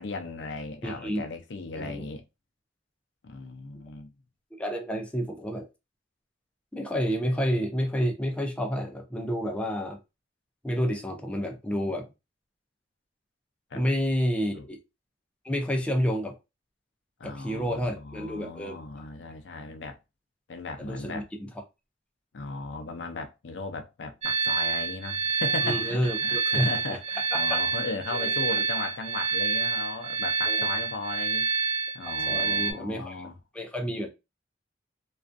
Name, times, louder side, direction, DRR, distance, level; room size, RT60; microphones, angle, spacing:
voice 1, 0.0-2.2 3.2-4.1 13.7-13.8 14.5-14.7 17.2-20.0 20.5-21.3 22.3-31.5 31.9-33.4, left 3 dB, 70° left, 0.5 m, -37 dB
voice 2, 0.8-1.3 1.8-2.0 4.6-5.7 6.7-10.0 10.6-12.1 13.7-14.8 15.4-16.4 17.2-18.8 20.8-21.5 25.6-27.0 27.3-27.6 28.1-28.6 30.5-30.7 32.1-33.2 33.5-34.1, equal, 5° left, 0.4 m, -30 dB
sound 1, 24.2-32.7, right 4 dB, 35° right, 0.6 m, -28 dB
2.4 x 2.2 x 2.5 m
head